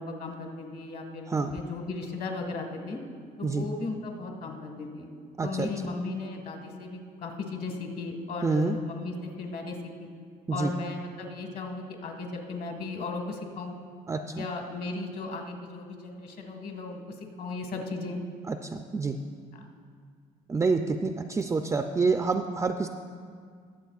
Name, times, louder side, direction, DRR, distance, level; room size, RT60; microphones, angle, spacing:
voice 1, 0.0-3.0 3.4-5.1 5.4-10.1 10.5-13.7 14.3-17.0 17.4-18.2 19.5-19.7, left 3 dB, 60° left, 2 dB, 1.6 m, -36 dB
voice 2, 5.4-5.9 8.4-8.7 10.5-10.7 14.1-14.4 18.5-19.2 20.5-22.9, right 4 dB, 15° right, 5 dB, 0.3 m, -27 dB
21.5 x 7.5 x 2.4 m, 2.1 s
cardioid pair, 110°, 17 cm